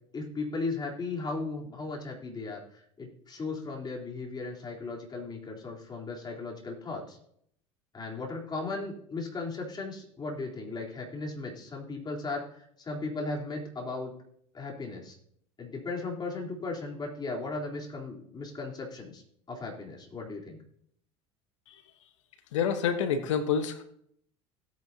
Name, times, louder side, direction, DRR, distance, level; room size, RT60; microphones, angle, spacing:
voice 1, 0.1-7.2 7.9-14.1 14.5-15.2 15.6-19.2 19.5-20.6, left 3 dB, 25° left, -2 dB, 3.8 m, -36 dB
voice 2, 22.5-23.8, left 7 dB, 80° left, 9 dB, 1.3 m, -28 dB
16.5 x 9.5 x 2.9 m, 0.68 s
hypercardioid pair, 75°, 16 cm